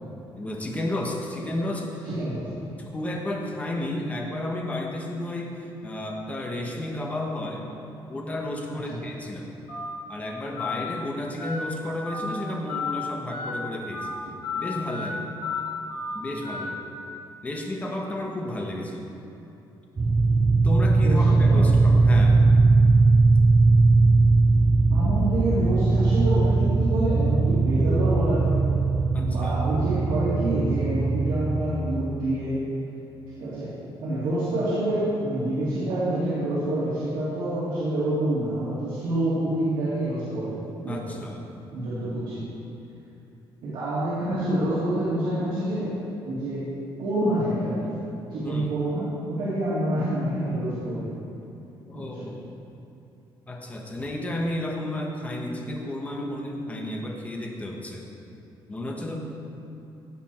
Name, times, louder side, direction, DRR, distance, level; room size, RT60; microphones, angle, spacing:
voice 1, 0.4-2.1 2.9-7.7 8.1-9.5 10.1-14.2 14.6-15.2 16.1-16.8 17.4-19.1 20.6-22.4 29.1-29.5 40.9-41.6 48.4-48.7 51.9-52.3 53.5-58.0 58.7-59.2, left 1 dB, 15° left, 0 dB, 1.2 m, -32 dB
voice 2, 2.0-2.5 8.7-9.0 21.0-21.6 24.9-28.6 29.2-32.6 33.4-33.7 34.0-40.6 40.8-41.2 41.7-42.4 43.6-45.9 46.2-46.7 47.0-48.0 48.3-51.1 51.9-52.3, right 1 dB, 70° right, -10 dB, 2.9 m, -27 dB
Telephone, 9.7-9.8 10.6-10.7 11.4-11.5 12.0-12.3 12.7-12.9 13.3-13.5 13.9-14.1 14.4-14.6 14.9-15.1 15.4-15.6 15.9-16.1 16.4-16.6, left 5 dB, 60° left, 3.0 m, -32 dB
sound 1, 20.0-31.6, right 3 dB, 15° right, 0.5 m, -19 dB
16.5 x 7.2 x 4.4 m, 2.9 s
cardioid pair, 175°, 9 cm